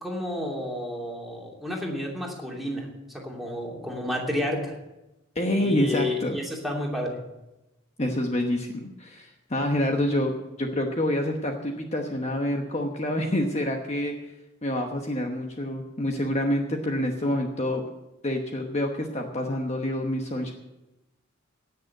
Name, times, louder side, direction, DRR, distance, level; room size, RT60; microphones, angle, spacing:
voice 1, 0.0-4.8 5.6-7.2, left 1 dB, ahead, -2 dB, 2.7 m, -31 dB
voice 2, 5.3-6.4 8.0-14.1 14.6-17.9 18.2-20.5, left 1 dB, 35° left, 3 dB, 1.1 m, -27 dB
18.0 x 6.6 x 7.8 m, 0.99 s
head